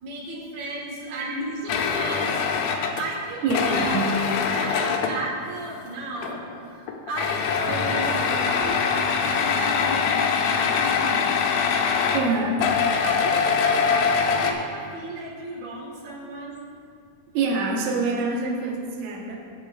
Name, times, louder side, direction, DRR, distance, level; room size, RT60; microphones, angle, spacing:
voice 1, 0.0-4.0 4.5-11.3 12.0-12.4 12.9-16.6, right 1 dB, 65° right, -3 dB, 3.2 m, -34 dB
sound 1, 1.7-5.2 6.2-6.6 6.9-14.5, left 6 dB, 85° left, 2.0 m, -23 dB
voice 2, 3.4-4.1 12.1-12.6 17.3-19.4, right 3 dB, 85° right, -2 dB, 1.6 m, -25 dB
15.0 x 8.5 x 2.5 m, 2.4 s
omnidirectional pair, 4.9 m